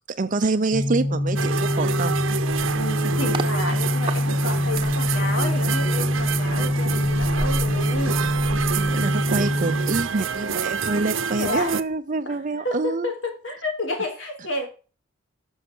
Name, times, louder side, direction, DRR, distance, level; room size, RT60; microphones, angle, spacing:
voice 1, 0.1-2.2 7.7-8.0 8.8-13.1, right 3 dB, 40° right, 0.6 m, -26 dB
sound 1, 0.7-10.1, equal, 50° left, 2.5 m, -24 dB
sound 2, 1.4-11.8, right 6 dB, 85° right, 0.9 m, -28 dB
voice 2, 2.8-8.3 11.4-11.8 12.3-12.4 12.6-14.7, left 2 dB, 70° left, 3.9 m, -30 dB
sound 3, 3.3-3.5 4.1-9.6 10.0-10.2, right 2 dB, 25° right, 1.0 m, -36 dB
11.5 x 6.5 x 6.1 m
head